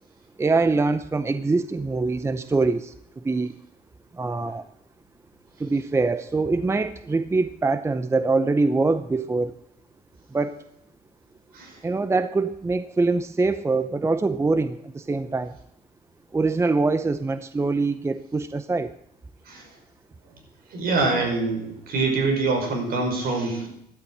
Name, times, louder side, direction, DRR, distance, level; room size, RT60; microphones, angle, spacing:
voice 1, 0.4-3.5 4.1-4.7 5.6-9.5 10.3-10.6 11.8-15.6 16.3-18.9, right 3 dB, 15° right, 12 dB, 0.6 m, -24 dB
voice 2, 20.7-23.7, right 3 dB, 60° right, 3 dB, 5.6 m, -25 dB
13.0 x 12.0 x 7.9 m, 0.77 s
cardioid pair, 110°, 17 cm